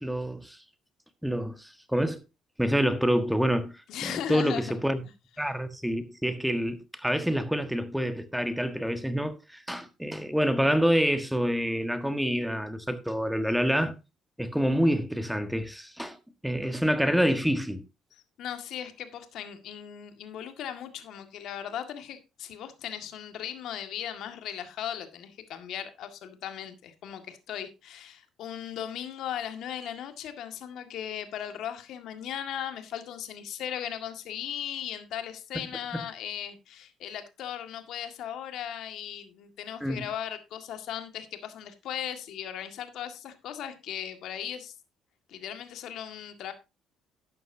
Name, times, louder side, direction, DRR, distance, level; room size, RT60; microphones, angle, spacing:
voice 1, 0.0-0.6 1.2-2.2 2.6-5.0 5.4-13.9 14.4-16.2 16.4-17.8 39.8-40.1, equal, ahead, 1.5 m, -27 dB
voice 2, 3.9-4.9 18.1-44.7 45.3-46.5, left 10 dB, 70° left, 1.9 m, -37 dB
12.5 x 9.2 x 2.7 m
cardioid pair, 90°, 0 cm